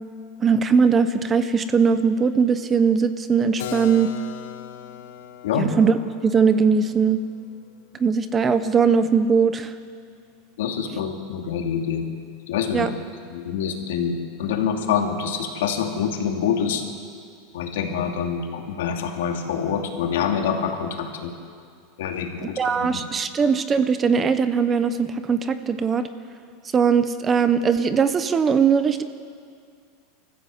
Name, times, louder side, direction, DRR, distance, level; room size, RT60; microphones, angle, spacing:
voice 1, 0.4-4.1 5.6-5.9 6.2-7.2 8.0-9.7 12.7-12.9 22.6-26.1 26.7-29.0, right 6 dB, 15° right, 11 dB, 0.7 m, -20 dB
Keyboard (musical), 3.6-9.2, left 11 dB, 70° left, 1.5 m, -40 dB
voice 2, 10.6-12.0 12.5-12.9 13.3-14.1 14.4-16.8 17.5-21.3 22.0-23.0, left 7 dB, 90° left, 3 dB, 2.7 m, -26 dB
25.0 x 14.5 x 7.9 m, 2.3 s
supercardioid pair, 180°, 0 cm